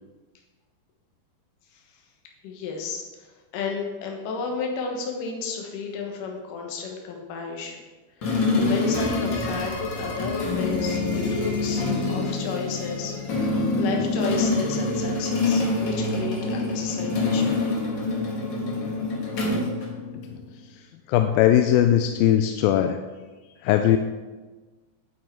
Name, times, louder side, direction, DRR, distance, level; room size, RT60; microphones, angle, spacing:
voice 1, 2.4-7.8 8.2-17.7, left 5 dB, 65° left, 1 dB, 2.8 m, -33 dB
sound 1, 8.2-20.5, left 3 dB, 50° left, 1.5 m, -26 dB
voice 2, 21.1-23.0 23.6-24.0, left 11 dB, 80° left, 6 dB, 2.2 m, -19 dB
9.3 x 8.6 x 4.6 m, 1.2 s
omnidirectional pair, 4.2 m